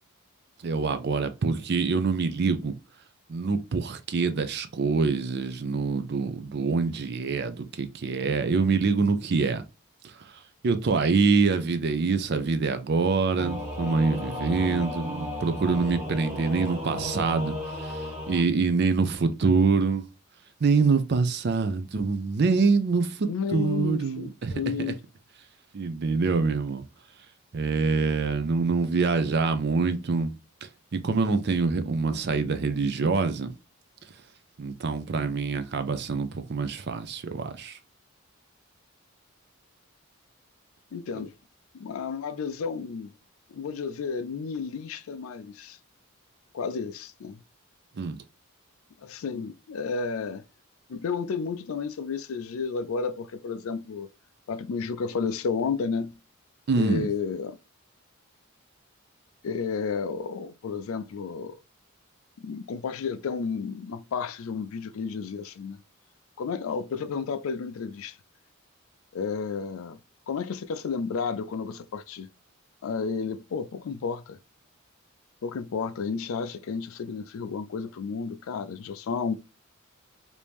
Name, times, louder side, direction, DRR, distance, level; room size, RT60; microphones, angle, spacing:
voice 1, 0.6-2.7 3.3-9.6 10.0-10.1 10.6-20.1 20.6-24.6 24.9-25.0 25.7-26.8 27.5-30.3 30.6-33.5 34.6-37.8 48.0-48.2 56.7-57.1, right 4 dB, 50° right, 0.4 m, -25 dB
Singing / Musical instrument, 13.4-18.4, left 1 dB, 30° right, 1.4 m, -34 dB
voice 2, 23.2-25.0 40.9-41.3 41.7-43.1 43.5-45.8 46.5-47.4 49.0-50.4 50.9-54.1 54.5-56.1 56.8-57.6 59.4-61.6 62.4-65.8 66.4-68.2 69.1-70.0 70.3-72.3 72.8-74.4 75.4-79.3, left 5 dB, 70° left, 0.4 m, -32 dB
3.0 x 2.6 x 3.3 m
head